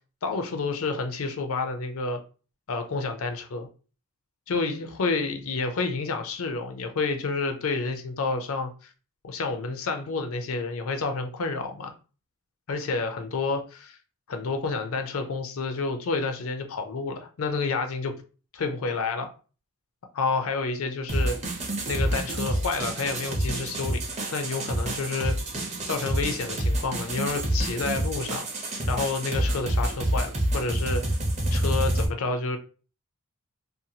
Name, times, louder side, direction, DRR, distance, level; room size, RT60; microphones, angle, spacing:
voice 1, 0.2-2.2 2.7-3.7 4.5-8.7 9.2-11.9 12.7-14.0 14.3-18.1 18.5-19.3 20.1-21.4 21.9-24.0 24.3-25.4 25.9-28.5 28.9-31.2 31.5-32.6, left 4 dB, 65° left, 0.5 m, -29 dB
sound 1, 21.1-32.1, right 1 dB, 30° right, 0.6 m, -28 dB
2.7 x 2.2 x 2.7 m
head